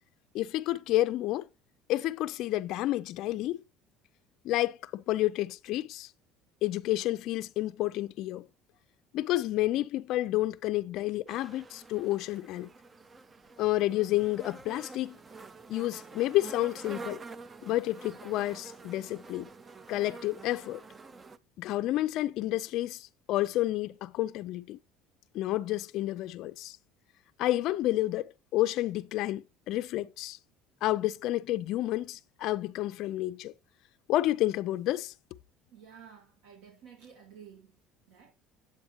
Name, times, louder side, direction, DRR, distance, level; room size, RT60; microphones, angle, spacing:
voice 1, 0.3-1.5 1.9-3.6 4.4-6.1 6.6-8.5 9.1-12.7 13.6-15.2 15.7-17.2 17.6-19.5 19.9-20.8 21.6-24.8 25.3-26.8 27.4-30.4 30.8-33.5 34.1-35.1, left 16 dB, 50° left, 0.4 m, -30 dB
sound 1, 11.3-21.4, right 4 dB, 15° right, 0.4 m, -48 dB
voice 2, 35.7-37.7 38.1-38.3, right 7 dB, 85° right, 1.9 m, -52 dB
8.4 x 7.9 x 2.9 m
cardioid pair, 170°, 0 cm